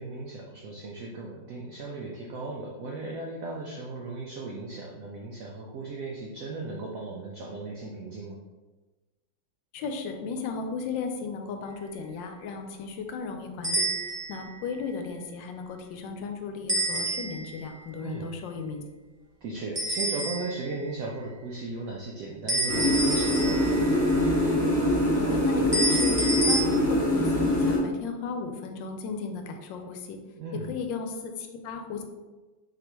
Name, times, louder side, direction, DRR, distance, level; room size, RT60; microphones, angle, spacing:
voice 1, 0.0-8.4 18.0-18.3 19.4-23.8 30.4-30.7, right 3 dB, 80° right, -1 dB, 0.7 m, -36 dB
voice 2, 9.7-13.9 14.3-18.8 25.1-30.2 30.7-32.0, left 4 dB, 80° left, 5 dB, 1.2 m, -35 dB
sound 1, 13.6-14.4 16.7-17.6 19.7-20.7 22.5-23.9 25.7-26.6, right 1 dB, 40° right, 0.3 m, -28 dB
sound 2, 22.7-27.8, left 1 dB, 25° left, 1.0 m, -24 dB
4.0 x 3.3 x 3.0 m, 1.2 s
omnidirectional pair, 2.0 m